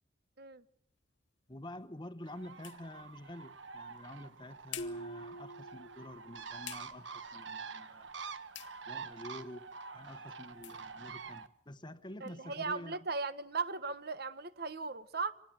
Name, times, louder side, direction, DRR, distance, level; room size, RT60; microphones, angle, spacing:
sound 1, 0.9-12.4, left 12 dB, 90° left, 2.1 m, -55 dB
voice 1, 1.5-8.1 8.8-13.0, left 1 dB, 25° left, 1.1 m, -48 dB
Bird, 2.3-11.5, right 5 dB, 85° right, 1.4 m, -47 dB
sound 2, 4.8-6.5, right 1 dB, 60° left, 0.9 m, -45 dB
voice 2, 12.2-15.3, right 4 dB, 60° right, 1.3 m, -37 dB
26.0 x 20.0 x 7.4 m
head